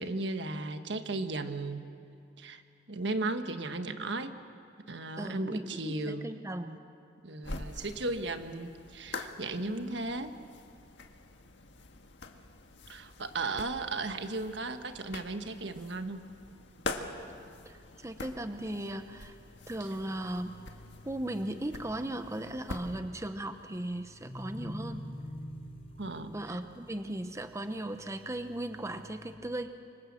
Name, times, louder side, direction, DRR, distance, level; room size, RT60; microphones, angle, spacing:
voice 1, 0.0-1.9 2.4-2.6 2.9-4.4 4.9-6.3 7.2-10.3 12.9-16.2 26.0-26.6, right 2 dB, 70° right, 7 dB, 1.5 m, -35 dB
voice 2, 5.2-6.8 9.6-10.0 17.6-19.4 19.7-20.6 21.1-25.0 26.3-29.8, right 1 dB, 15° right, 8 dB, 0.9 m, -37 dB
sound 1, 7.4-23.0, left 3 dB, 70° left, 1.7 m, -45 dB
sound 2, 19.7-29.3, equal, 35° left, 4.8 m, -48 dB
26.0 x 25.5 x 7.6 m, 2.4 s
head